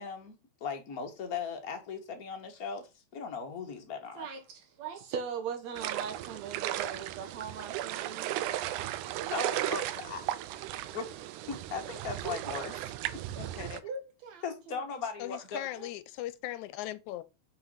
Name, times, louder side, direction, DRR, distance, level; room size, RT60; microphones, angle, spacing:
voice 1, 0.0-4.3 9.3-10.3 10.9-12.9 13.6-13.7 14.4-15.7, left 5 dB, 35° left, 1.7 m, -38 dB
voice 2, 4.2-8.4 13.5-14.8 15.8-15.9, right 6 dB, 70° right, 2.3 m, -40 dB
sound 1, 5.8-13.8, right 13 dB, 85° right, 2.1 m, -35 dB
voice 3, 13.4-13.8 15.2-17.2, left 14 dB, 90° left, 2.0 m, -39 dB
5.8 x 5.7 x 5.7 m
omnidirectional pair, 3.4 m